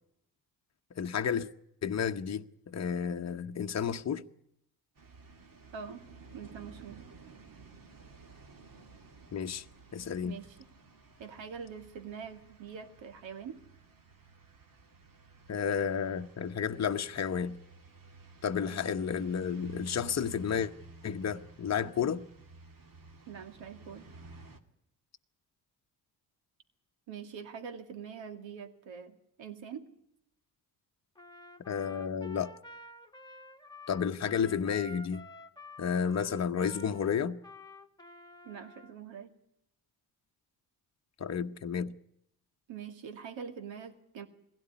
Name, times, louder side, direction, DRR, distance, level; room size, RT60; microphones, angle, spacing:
voice 1, 0.9-1.5 1.8-4.3 9.3-9.6 9.9-10.4 15.5-17.6 18.4-20.7 21.0-22.2 31.7-32.5 33.9-35.3 35.8-37.4 41.2-41.9, left 7 dB, 35° left, 1.0 m, -32 dB
sound 1, 5.0-24.6, right 3 dB, 45° right, 2.6 m, -53 dB
voice 2, 5.7-6.0 6.3-7.0 10.2-10.6 11.2-13.6 18.6-18.9 23.3-24.1 27.1-29.9 38.4-39.3 42.7-44.3, right 7 dB, 65° right, 2.4 m, -44 dB
Trumpet, 31.2-38.9, left 1 dB, 10° left, 1.5 m, -50 dB
21.0 x 16.5 x 9.7 m
hypercardioid pair, 45°, 48 cm